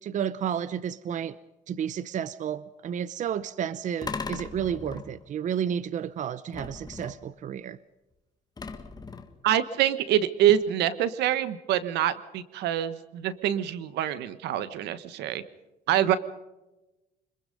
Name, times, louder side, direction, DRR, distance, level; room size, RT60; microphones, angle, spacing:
voice 1, 0.0-1.4 1.7-7.8, right 9 dB, 45° right, 0.7 m, -31 dB
sound 1, 4.0-5.4 6.5-7.4 8.6-9.5, left 4 dB, 25° left, 1.7 m, -38 dB
voice 2, 9.4-15.4 15.9-16.2, right 11 dB, 80° right, 1.3 m, -25 dB
25.5 x 21.5 x 5.4 m
cardioid pair, 110°, 17 cm